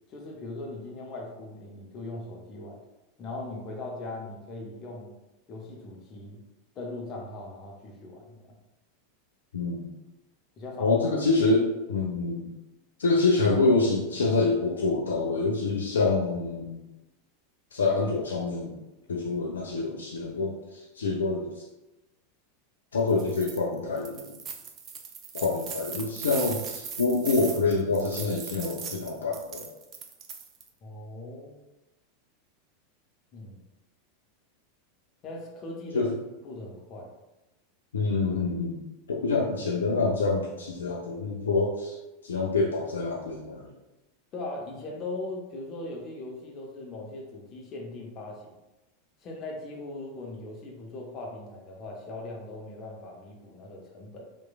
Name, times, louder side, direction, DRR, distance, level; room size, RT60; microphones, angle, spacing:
voice 1, 0.1-2.8 3.2-5.1 5.5-6.4 6.8-8.6 10.6-11.0 30.8-31.6 33.3-33.6 35.2-36.1 36.4-37.1 44.3-48.6 49.2-54.3, left 2 dB, 35° left, -1 dB, 0.6 m, -39 dB
voice 2, 9.5-9.9 10.8-12.5 13.0-16.8 17.7-18.8 19.1-21.6 22.9-24.3 25.3-29.7 35.9-36.1 37.9-42.0 42.2-43.7, left 3 dB, 70° left, -1 dB, 0.3 m, -26 dB
sound 1, 23.1-23.6 24.0-30.7, right 6 dB, 35° right, 0.3 m, -39 dB
2.9 x 2.2 x 2.3 m, 1.0 s
figure-of-eight pair, 85°, 0 cm